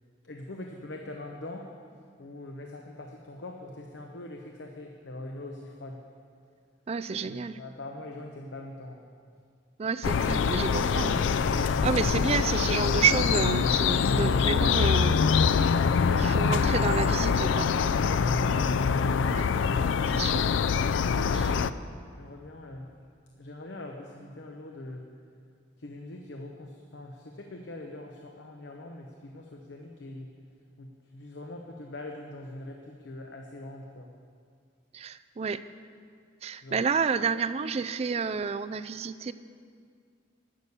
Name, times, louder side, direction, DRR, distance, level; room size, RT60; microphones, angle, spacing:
voice 1, 0.2-1.7 2.2-6.0 7.2-9.0 21.5-22.9 23.4-25.1 25.8-30.3 30.8-34.1 36.6-36.8, left 2 dB, 70° left, 2 dB, 0.8 m, -43 dB
voice 2, 6.9-7.6 9.8-15.2 16.2-17.7 19.3-19.5 20.1-20.5 21.3-21.6 34.9-35.6 36.4-39.3, right 5 dB, 35° right, 13 dB, 0.3 m, -30 dB
sound 1, 10.0-21.7, left 6 dB, 85° left, 0.4 m, -24 dB
11.5 x 6.9 x 8.3 m, 2.2 s
head